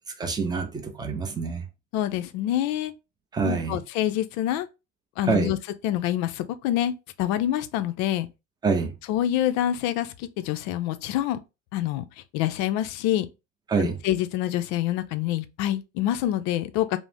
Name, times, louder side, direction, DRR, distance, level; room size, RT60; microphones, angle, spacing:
voice 1, 0.2-1.6 3.3-3.8 5.2-5.5 8.6-8.9 13.7-14.0, right 5 dB, 10° right, 0.4 m, -26 dB
voice 2, 1.9-2.9 3.4-4.7 5.2-5.6 5.8-8.3 9.1-11.4 11.7-12.0 12.3-13.3 13.8-17.0, left 12 dB, 45° left, 0.4 m, -26 dB
2.4 x 2.0 x 3.2 m
hypercardioid pair, 80°, 38 cm